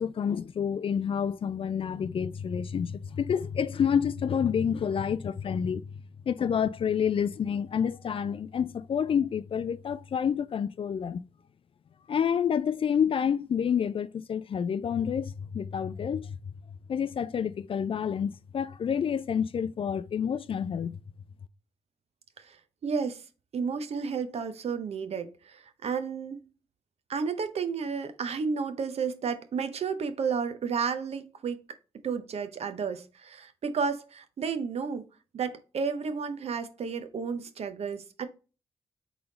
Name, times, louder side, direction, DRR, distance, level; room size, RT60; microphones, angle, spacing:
voice 1, 0.0-5.8 6.3-11.2 12.1-16.4 16.9-21.0, left 7 dB, 50° left, 0.4 m, -28 dB
voice 2, 22.8-23.2 23.5-26.5 27.1-31.6 32.0-35.1 35.3-38.3, right 5 dB, 60° right, 0.7 m, -32 dB
3.9 x 3.3 x 3.9 m
supercardioid pair, 50°, 12 cm